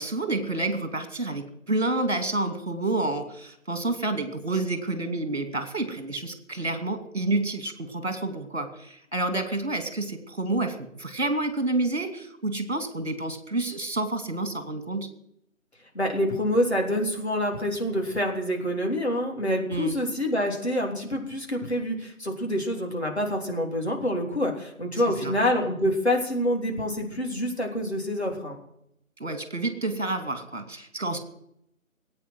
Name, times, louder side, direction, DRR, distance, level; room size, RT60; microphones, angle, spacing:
voice 1, 0.0-15.1 19.7-20.0 25.0-25.4 29.2-31.2, right 2 dB, 50° right, 7 dB, 2.7 m, -29 dB
voice 2, 15.9-28.6, equal, 50° left, 0 dB, 3.5 m, -27 dB
19.0 x 9.0 x 7.7 m, 0.76 s
figure-of-eight pair, 170°, 42 cm